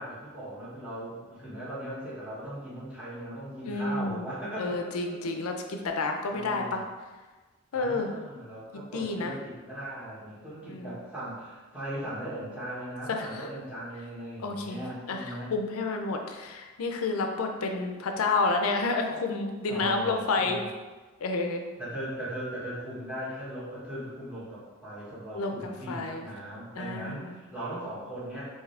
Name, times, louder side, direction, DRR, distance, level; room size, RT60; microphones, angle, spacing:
voice 1, 0.0-4.8 5.2-5.3 6.3-6.9 7.7-15.5 19.7-20.7 21.8-28.5, right 1 dB, 5° right, -12 dB, 1.4 m, -38 dB
voice 2, 3.7-6.8 7.7-8.1 8.9-9.3 10.7-10.9 13.1-13.5 14.4-14.8 15.1-20.6 21.2-21.6 25.3-26.3 26.7-27.4, left 3 dB, 85° left, 4 dB, 0.5 m, -30 dB
3.6 x 2.7 x 3.3 m, 1.3 s
head